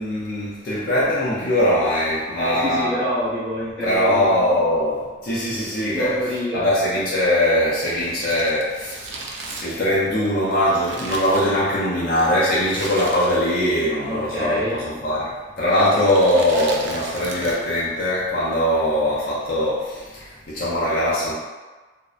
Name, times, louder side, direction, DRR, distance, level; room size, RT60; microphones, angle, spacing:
voice 1, 0.0-3.1 3.8-6.2 6.5-21.3, left 1 dB, 50° left, -8 dB, 0.4 m, -21 dB
voice 2, 2.4-4.3 5.9-6.7 14.0-14.8, equal, 5° left, -13 dB, 0.9 m, -26 dB
Crumpling crinkling, 8.0-12.0 12.6-13.7 13.9-14.0 14.8-15.2 15.8-17.8 18.0-18.1, right 3 dB, 80° right, 0.4 m, -35 dB
2.6 x 2.0 x 2.4 m, 1.3 s
head